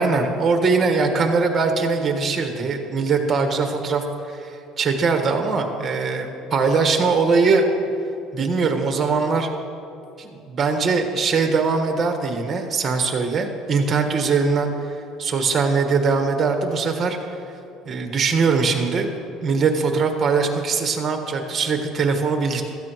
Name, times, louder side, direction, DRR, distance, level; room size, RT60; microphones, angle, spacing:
voice 1, 0.0-7.6 8.3-9.5 10.2-14.9 15.2-17.2 17.8-19.1 19.4-22.6, right 4 dB, 30° right, 4 dB, 1.4 m, -21 dB
16.0 x 13.5 x 3.1 m, 2.6 s
cardioid pair, 135°, 0 cm